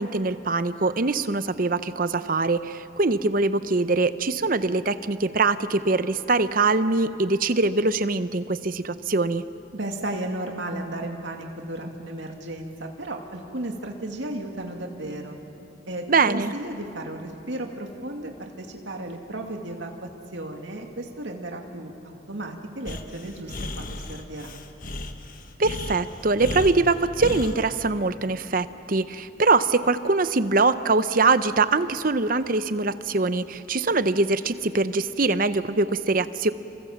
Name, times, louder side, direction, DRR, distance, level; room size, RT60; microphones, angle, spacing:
voice 1, 0.0-9.4 16.1-16.5 25.6-36.5, right 3 dB, 45° right, 12 dB, 0.8 m, -23 dB
voice 2, 9.7-15.4 15.9-19.9 20.3-24.6, right 1 dB, 65° right, 2 dB, 2.5 m, -34 dB
Breathing, 22.9-27.6, left 2 dB, 45° left, 1.3 m, -34 dB
29.0 x 25.0 x 7.3 m, 2.7 s
head